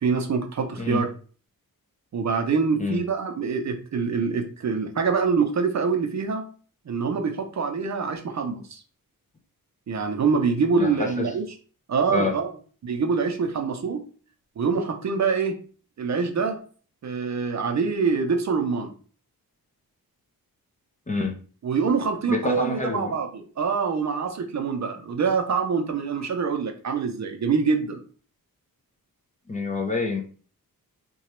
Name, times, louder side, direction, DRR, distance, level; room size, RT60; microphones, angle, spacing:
voice 1, 0.0-1.1 2.1-6.5 6.9-8.8 9.9-11.5 11.9-12.5 12.8-14.0 14.6-15.6 16.0-16.6 17.0-18.9 21.6-28.0, right 5 dB, 50° right, 5 dB, 0.5 m, -25 dB
voice 2, 10.8-11.3 12.1-12.3 21.1-21.3 22.3-23.1 29.5-30.2, left 3 dB, 20° left, 2 dB, 0.5 m, -27 dB
2.9 x 2.3 x 4.2 m, 0.41 s
wide cardioid pair, 165°, 36 cm